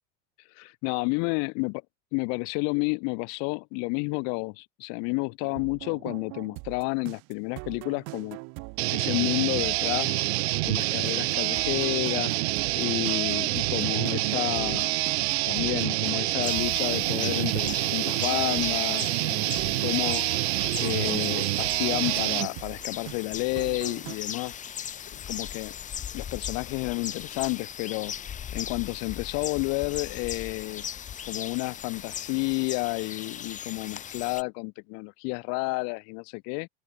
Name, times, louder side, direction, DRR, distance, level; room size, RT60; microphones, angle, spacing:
voice 1, 0.6-1.8 2.1-8.4 8.9-10.2 10.6-12.4 12.7-14.9 15.5-20.3 20.8-24.6 25.1-25.7 26.1-28.1 28.5-30.9 31.3-36.7, left 35 dB, 50° left, 1.1 m, -30 dB
sound 1, 5.4-24.2, right 33 dB, 50° right, 1.2 m, -42 dB
sound 2, 8.8-22.5, right 21 dB, 85° right, 1.1 m, -27 dB
sound 3, 16.4-34.4, left 9 dB, 25° left, 3.6 m, -38 dB
supercardioid pair, 160°, 31 cm